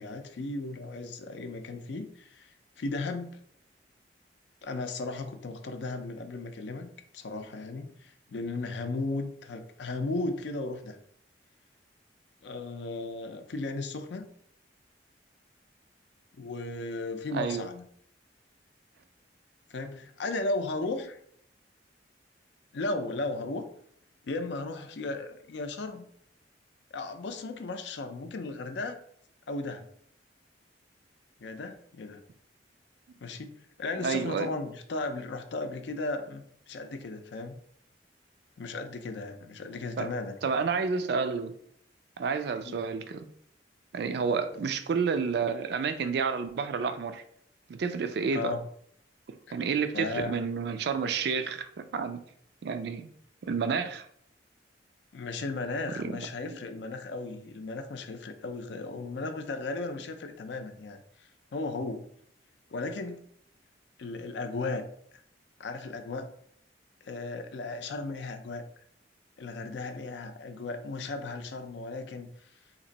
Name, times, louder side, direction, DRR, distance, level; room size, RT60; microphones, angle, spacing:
voice 1, 0.0-2.5 2.8-3.4 4.6-11.0 12.4-14.3 16.4-17.8 19.7-21.2 22.7-23.6 24.2-26.0 26.9-29.0 29.5-29.9 31.4-32.2 33.2-33.5 33.8-37.5 38.6-40.4 42.6-42.8 44.5-44.6 48.3-48.6 49.5-49.6 49.9-50.4 55.1-61.0 61.5-62.0 62.7-63.2 64.0-64.9 65.6-66.3 67.0-68.6 69.4-72.3, left 3 dB, 70° left, 7 dB, 0.5 m, -35 dB
voice 2, 34.0-34.5 40.0-40.1 40.4-41.5 42.2-43.3 43.9-47.2 47.7-48.5 49.5-52.2 52.6-53.1 53.4-54.1 56.0-56.2 56.5-56.6, right 5 dB, 65° right, 9 dB, 0.3 m, -30 dB
2.9 x 2.5 x 4.0 m, 0.65 s
head